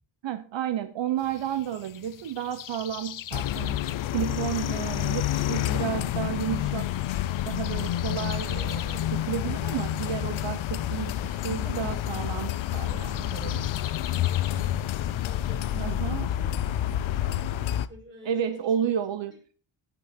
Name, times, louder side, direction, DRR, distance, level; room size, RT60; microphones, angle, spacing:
voice 1, 0.2-6.9 7.5-13.7 15.7-16.3 18.2-19.4, right 9 dB, 70° right, 11 dB, 0.9 m, -32 dB
sound 1, 1.2-16.3, left 11 dB, 45° left, 0.5 m, -44 dB
sound 2, 3.3-17.9, left 12 dB, 80° left, 0.8 m, -29 dB
voice 2, 14.5-18.9 19.3-19.4, right 1 dB, 25° right, -2 dB, 5.4 m, -50 dB
17.5 x 6.0 x 4.3 m, 0.38 s
wide cardioid pair, 165°, 47 cm